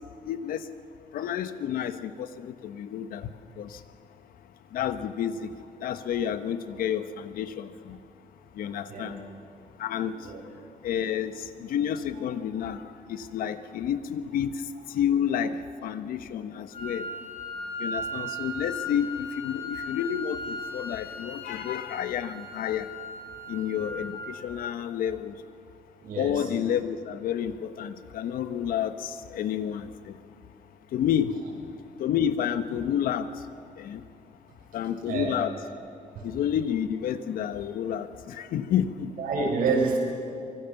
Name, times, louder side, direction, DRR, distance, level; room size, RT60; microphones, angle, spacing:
voice 1, 0.3-0.6 1.1-3.3 3.6-3.7 4.7-5.5 5.8-8.0 8.6-9.1 9.8-10.2 10.8-11.3 11.6-12.8 13.1-14.5 14.9-15.6 15.8-17.0 17.8-22.9 23.5-25.3 26.2-30.1 30.9-31.3 32.0-33.3 33.8-34.0 34.7-35.5 36.2-39.1, left 9 dB, 85° left, 11 dB, 1.2 m, -29 dB
Wind instrument woodwind instrument, 16.7-24.7, left 1 dB, 40° left, 4.4 m, -37 dB
voice 2, 26.0-26.4 35.0-35.4 39.2-40.0, right 4 dB, 80° right, -1 dB, 7.2 m, -27 dB
24.5 x 24.0 x 7.1 m, 2.6 s
cardioid pair, 170°, 14 cm